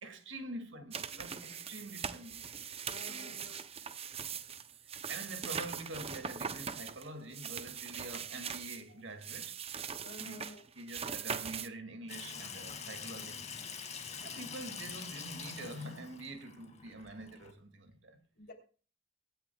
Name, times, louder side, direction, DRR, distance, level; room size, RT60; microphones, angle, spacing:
voice 1, 0.0-2.4 3.1-3.6 5.1-9.6 10.2-10.4 10.8-13.7 14.2-18.2, right 2 dB, 75° right, 2.2 m, -46 dB
sound 1, 0.9-8.8 9.2-11.7, right 7 dB, 30° right, 0.7 m, -41 dB
voice 2, 2.9-3.6 8.9-9.0 10.0-10.7 14.3-14.7 18.4-18.5, left 1 dB, 50° left, 3.4 m, -52 dB
Water tap faucet / Sink (filling or washing), 12.1-17.5, left 6 dB, 35° left, 2.3 m, -45 dB
22.5 x 10.5 x 2.3 m
head